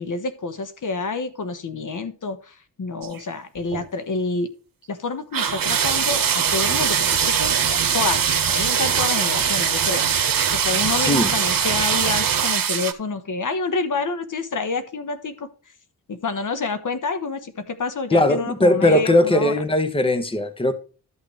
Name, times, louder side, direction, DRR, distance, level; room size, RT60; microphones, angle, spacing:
voice 1, 0.0-4.5 4.9-10.1 10.6-15.5 16.1-19.5, left 4 dB, 50° left, 1.3 m, -28 dB
sound 1, 3.0-3.2 3.6-3.9 5.3-12.9, right 7 dB, 55° right, 1.3 m, -21 dB
voice 2, 11.0-11.3 18.1-20.7, left 1 dB, 15° left, 1.3 m, -19 dB
13.0 x 6.2 x 3.3 m
cardioid pair, 85°, 40 cm